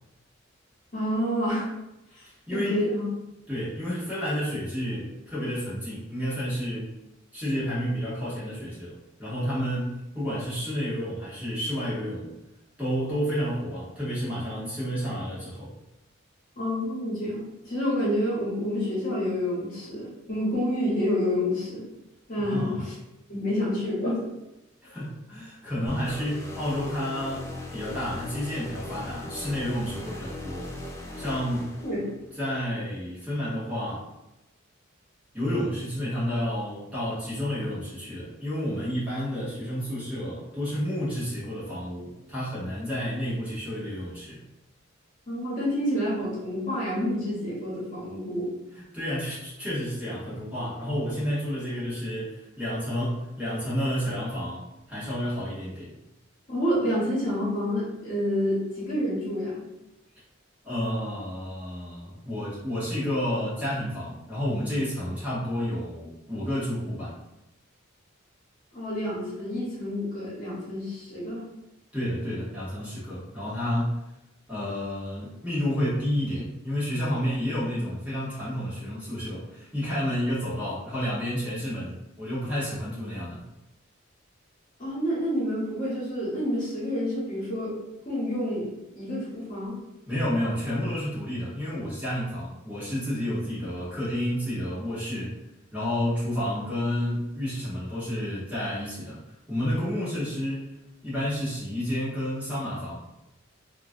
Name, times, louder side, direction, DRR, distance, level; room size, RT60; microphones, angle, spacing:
voice 1, 0.9-1.7 2.1-3.1 16.6-21.8 22.3-22.9 23.3-24.2 31.8-32.1 45.3-48.5 56.5-59.6 68.7-71.5 84.8-87.7 88.0-89.8, equal, 40° left, -7 dB, 1.1 m, -28 dB
voice 2, 2.3-2.8 3.5-7.0 7.3-12.3 12.8-15.7 22.4-22.8 24.8-27.5 27.7-30.7 31.2-31.7 32.4-34.1 35.3-44.4 48.7-55.9 60.6-67.1 71.9-74.0 74.5-83.4 90.1-95.3 95.7-99.2 99.5-100.7 101.0-103.0, equal, 5° right, -10 dB, 0.9 m, -30 dB
sound 1, 25.9-32.3, left 1 dB, 15° left, 0.3 m, -39 dB
2.9 x 2.4 x 2.6 m, 0.94 s
head